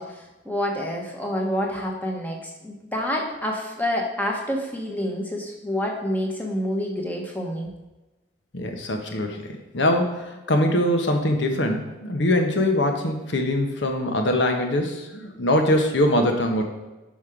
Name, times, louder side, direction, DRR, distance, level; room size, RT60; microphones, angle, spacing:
voice 1, 0.0-7.7, equal, 10° left, 0 dB, 1.1 m, -28 dB
voice 2, 8.5-9.5 9.7-16.6, left 1 dB, 70° left, 4 dB, 1.1 m, -22 dB
6.3 x 5.6 x 5.0 m, 1.1 s
head